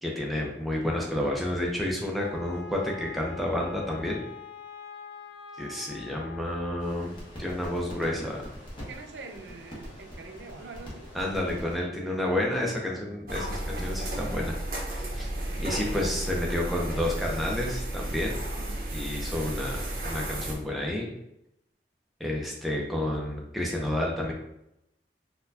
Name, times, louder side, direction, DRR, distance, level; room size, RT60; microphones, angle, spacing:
voice 1, 0.0-4.2 5.6-7.1 7.4-8.4 11.1-14.5 15.2-15.3 15.6-18.4 18.9-21.1 22.2-24.3, left 1 dB, ahead, -2 dB, 0.5 m, -30 dB
Wind instrument woodwind instrument, 2.2-6.7, left 6 dB, 85° left, 0.3 m, -44 dB
sound 1, 6.8-11.8, equal, 30° left, 0.9 m, -43 dB
voice 2, 8.9-11.1 18.6-18.8, right 4 dB, 75° right, 6 dB, 0.4 m, -44 dB
sound 2, 13.3-20.5, right 1 dB, 55° right, 0.8 m, -33 dB
4.2 x 2.2 x 2.6 m, 0.83 s
head